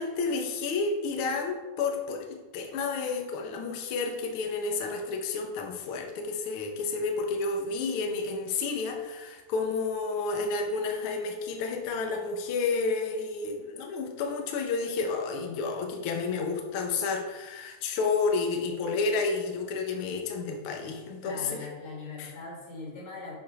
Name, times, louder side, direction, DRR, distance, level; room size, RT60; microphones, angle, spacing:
voice 1, 0.0-21.7 22.2-22.3, left 4 dB, 90° left, 3 dB, 1.2 m, -31 dB
voice 2, 21.2-23.3, left 3 dB, 60° left, -3 dB, 3.3 m, -40 dB
7.1 x 4.5 x 4.7 m, 1.2 s
omnidirectional pair, 3.7 m